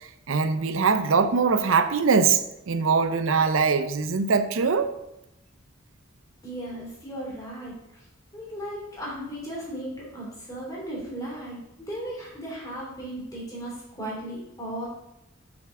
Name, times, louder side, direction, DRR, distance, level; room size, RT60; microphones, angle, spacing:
voice 1, 0.3-4.9, right 5 dB, 70° right, 10 dB, 0.6 m, -22 dB
voice 2, 6.4-8.1 8.3-14.9, right 1 dB, 15° left, -5 dB, 3.0 m, -36 dB
7.0 x 6.8 x 3.7 m, 0.86 s
head